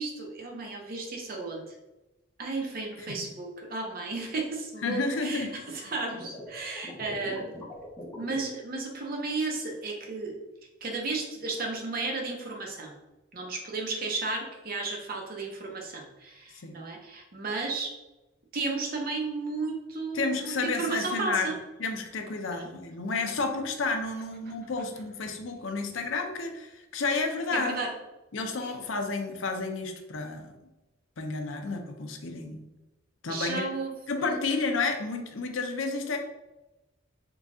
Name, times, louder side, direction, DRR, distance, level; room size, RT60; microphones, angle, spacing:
voice 1, 0.0-1.7 2.4-7.6 8.1-10.4 10.8-13.0 13.3-17.9 18.5-21.5 22.5-22.7 27.5-27.9 33.3-33.9 34.2-34.4, right 3 dB, 50° right, 1 dB, 0.7 m, -33 dB
voice 2, 4.8-5.9 16.6-16.8 20.1-21.5 21.8-27.8 28.3-30.5 31.2-32.7 33.2-33.7 34.1-36.2, left 3 dB, 85° left, 5 dB, 0.6 m, -31 dB
sound 1, 6.1-8.4, left 1 dB, 15° left, 0.6 m, -42 dB
3.9 x 2.4 x 3.6 m, 1.0 s
head